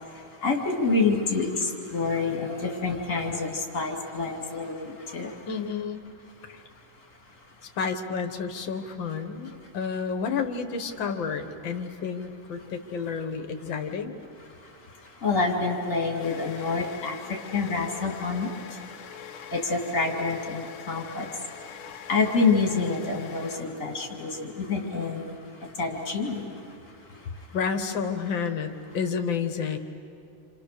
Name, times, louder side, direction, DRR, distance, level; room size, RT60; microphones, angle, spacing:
voice 1, 0.0-5.5 6.4-7.8 9.4-9.7 12.6-12.7 14.4-27.6, left 4 dB, 40° left, 1 dB, 3.0 m, -29 dB
voice 2, 5.5-6.0 6.5-6.6 7.8-14.1 27.5-29.8, left 6 dB, 65° left, 6 dB, 2.2 m, -30 dB
sound 1, 15.4-24.1, left 8 dB, 85° left, 1.8 m, -44 dB
29.0 x 26.5 x 6.7 m, 2.5 s
omnidirectional pair, 2.2 m